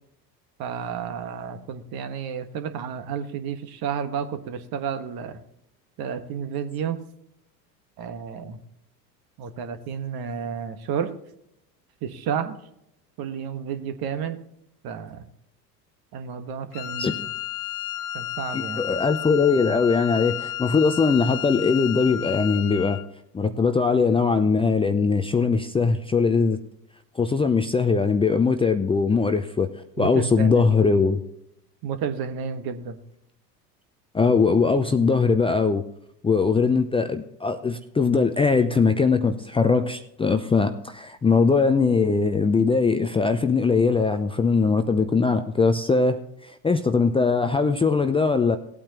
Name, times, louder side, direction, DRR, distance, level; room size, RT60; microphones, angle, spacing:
voice 1, 0.6-5.4 6.0-7.0 8.0-8.6 9.4-11.1 12.0-12.6 13.2-14.4 14.8-15.2 16.1-17.3 18.1-18.8 30.0-30.7 31.8-33.0, right 7 dB, 45° right, 9 dB, 1.5 m, -31 dB
Wind instrument woodwind instrument, 16.7-23.1, left 12 dB, 40° left, 0.9 m, -32 dB
voice 2, 18.5-23.0 23.3-26.6 27.2-29.7 30.0-31.2 34.1-35.8 36.2-46.2 46.5-48.6, left 4 dB, 10° left, 8 dB, 0.6 m, -21 dB
18.0 x 8.7 x 3.0 m, 0.79 s
hypercardioid pair, 75°, 49 cm